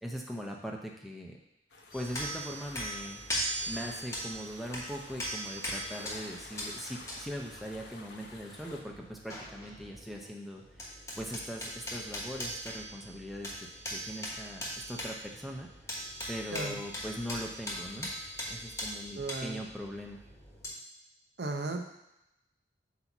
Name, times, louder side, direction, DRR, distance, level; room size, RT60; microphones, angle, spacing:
voice 1, 0.0-1.4 1.9-10.6 11.2-15.7 16.3-18.1 18.5-20.2, equal, ahead, -1 dB, 0.6 m, -41 dB
sound 1, 1.7-8.8, left 2 dB, 80° left, 0.9 m, -51 dB
sound 2, 1.9-10.3 10.5-20.7, equal, 15° left, 1.1 m, -40 dB
voice 2, 19.2-19.6 21.4-21.9, right 3 dB, 65° right, 4 dB, 0.7 m, -35 dB
8.1 x 2.8 x 5.9 m, 0.88 s
head